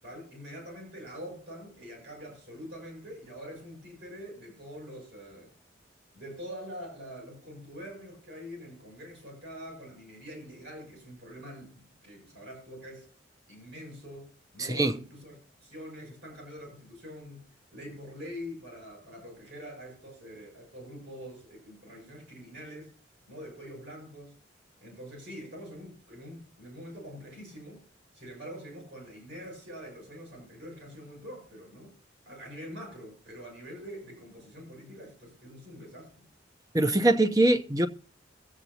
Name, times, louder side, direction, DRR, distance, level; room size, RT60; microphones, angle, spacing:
voice 1, 0.0-5.5 6.1-13.1 13.5-17.5 17.7-22.9 23.3-24.4 24.8-27.8 28.1-31.9 32.3-36.3, equal, 70° right, 7.5 m, -45 dB
voice 2, 14.6-14.9 36.7-37.9, right 2 dB, 20° right, 0.7 m, -23 dB
23.0 x 8.1 x 2.8 m
head